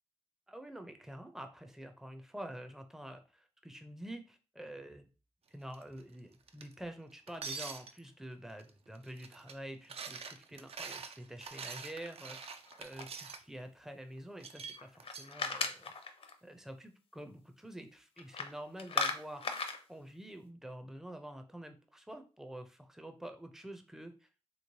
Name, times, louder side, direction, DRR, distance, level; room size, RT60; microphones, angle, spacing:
voice 1, 0.5-5.1 5.5-12.4 12.8-15.9 16.4-19.5 19.9-24.3, right 1 dB, 5° right, 6 dB, 0.5 m, -47 dB
sound 1, 5.7-6.0 6.5-6.7 7.3-8.1 8.6-8.7 9.0-9.5 9.8-13.4 14.4-15.3, right 5 dB, 60° right, 0.4 m, -45 dB
sound 2, 12.4-13.3 14.8-16.3 18.2-18.5 18.8-19.8, left 4 dB, 55° left, 0.5 m, -36 dB
3.1 x 3.0 x 2.7 m, 0.34 s
wide cardioid pair, 115°, 11 cm